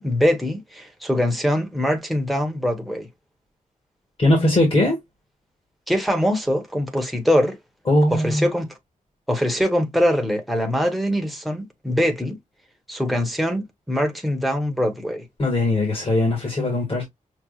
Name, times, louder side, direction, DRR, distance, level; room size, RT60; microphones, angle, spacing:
voice 1, 0.0-3.1 5.9-7.6 8.1-8.7 9.3-12.4 12.9-15.3, equal, ahead, 0.9 m, -23 dB
voice 2, 4.2-5.0 7.9-8.5 15.4-17.0, left 1 dB, 40° left, 1.7 m, -20 dB
6.0 x 2.4 x 2.3 m
wide cardioid pair, 170°, 14 cm